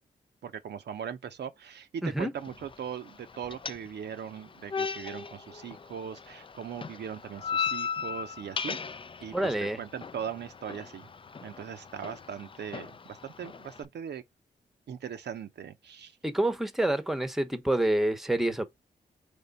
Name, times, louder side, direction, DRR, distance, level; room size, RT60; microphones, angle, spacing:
voice 1, 0.4-8.8 9.2-11.1 11.4-14.2 14.9-16.2, right 8 dB, 70° right, 0.6 m, -40 dB
sound 1, 2.4-13.8, left 6 dB, 30° left, 0.4 m, -38 dB
voice 2, 9.3-9.8 16.2-18.7, right 1 dB, ahead, 0.9 m, -27 dB
3.6 x 3.2 x 4.0 m
supercardioid pair, 45°, 18 cm